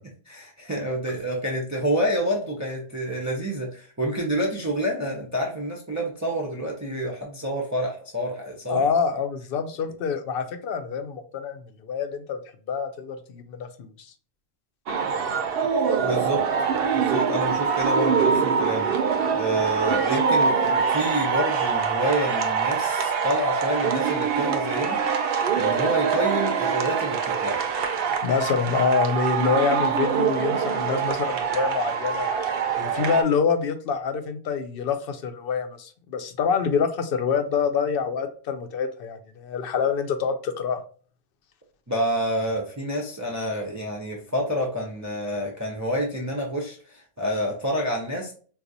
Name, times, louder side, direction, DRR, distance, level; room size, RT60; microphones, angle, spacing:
voice 1, 0.3-8.9 16.0-16.5 16.9-18.9 19.3-25.0 25.6-27.6 41.9-48.3, right 1 dB, 25° right, -1 dB, 0.4 m, -28 dB
voice 2, 8.7-12.4 12.7-14.1 28.2-32.3 32.8-40.8, left 6 dB, 65° left, 8 dB, 0.7 m, -26 dB
sound 1, 14.9-33.2, right 6 dB, 70° right, 0.7 m, -24 dB
3.9 x 2.4 x 2.6 m, 0.42 s
omnidirectional pair, 1.1 m